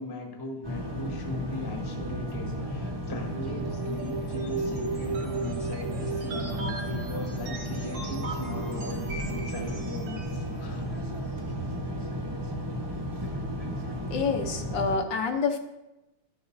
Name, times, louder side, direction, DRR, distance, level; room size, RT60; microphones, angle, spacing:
voice 1, 0.0-10.8 11.4-11.5 13.2-13.3, left 2 dB, 20° left, 1 dB, 0.7 m, -39 dB
sound 1, 0.6-15.0, equal, 20° right, 0.6 m, -34 dB
sound 2, 3.3-10.5, right 4 dB, 65° right, 1.8 m, -36 dB
voice 2, 14.1-15.6, left 5 dB, 70° left, 5 dB, 1.3 m, -27 dB
12.5 x 7.0 x 2.6 m, 0.99 s
omnidirectional pair, 2.3 m